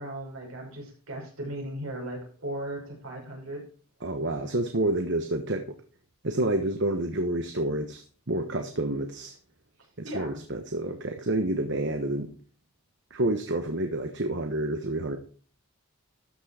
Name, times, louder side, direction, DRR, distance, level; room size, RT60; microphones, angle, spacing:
voice 1, 0.0-3.6 10.0-10.4, right 1 dB, 70° right, -1 dB, 5.8 m, -37 dB
voice 2, 4.0-5.8 6.2-8.0 8.3-9.4 10.0-12.3 13.1-15.2, right 1 dB, 50° right, 5 dB, 1.2 m, -29 dB
13.0 x 6.3 x 4.9 m, 0.41 s
head